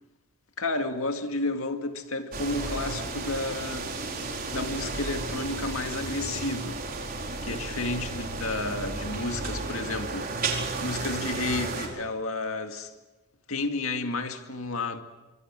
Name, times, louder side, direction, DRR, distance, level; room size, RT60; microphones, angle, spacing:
voice 1, 0.6-3.9 4.5-6.8 7.4-12.9 13.5-15.0, left 2 dB, 70° left, 2.2 m, -31 dB
sound 1, 2.3-11.9, right 3 dB, 45° right, 4.6 m, -33 dB
26.0 x 24.5 x 7.6 m
head